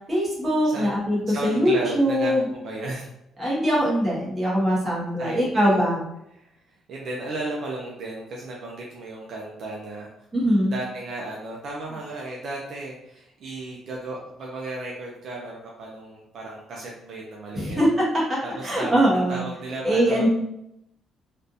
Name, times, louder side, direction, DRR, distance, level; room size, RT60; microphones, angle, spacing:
voice 1, 0.1-2.4 3.4-6.1 10.3-10.7 17.5-17.9 18.3-18.4 18.6-19.4 19.8-20.3, equal, 20° right, -6 dB, 1.3 m, -22 dB
voice 2, 1.3-3.1 5.2-5.8 6.3-10.2 10.7-17.8 18.4-20.3, right 2 dB, 55° right, -3 dB, 0.6 m, -35 dB
3.3 x 2.5 x 2.7 m, 0.80 s
cardioid pair, 140°, 0 cm